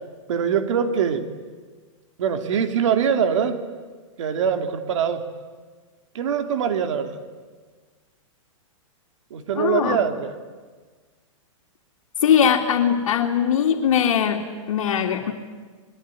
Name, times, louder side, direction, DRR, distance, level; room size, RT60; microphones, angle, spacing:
voice 1, 0.3-1.3 2.2-3.6 4.2-5.3 6.1-7.2 9.3-10.3, right 7 dB, 70° right, 7 dB, 3.0 m, -23 dB
voice 2, 9.5-10.0 12.2-15.3, left 8 dB, 75° left, -1 dB, 2.8 m, -20 dB
27.0 x 21.5 x 10.0 m, 1.5 s
hypercardioid pair, 140°, 17 cm